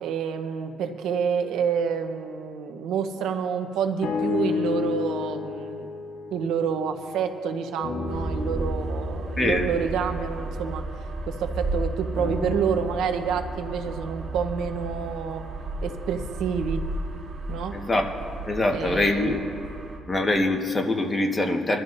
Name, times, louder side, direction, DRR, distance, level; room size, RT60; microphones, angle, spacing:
voice 1, 0.0-5.9 6.3-10.8 11.3-15.4 15.8-16.8 17.5-17.8 18.7-19.4, right 7 dB, 85° right, 7 dB, 1.0 m, -28 dB
sound 1, 4.0-7.4 7.8-11.5 12.1-16.4 17.0-17.1, left 4 dB, 60° left, 1.5 m, -33 dB
sound 2, 8.1-20.0, right 2 dB, 60° right, 1.9 m, -33 dB
voice 2, 9.4-9.7 17.7-18.1 18.4-19.5 20.1-21.8, left 2 dB, 20° left, 2 dB, 1.5 m, -24 dB
23.5 x 12.5 x 2.7 m, 2.4 s
cardioid pair, 90°, 0 cm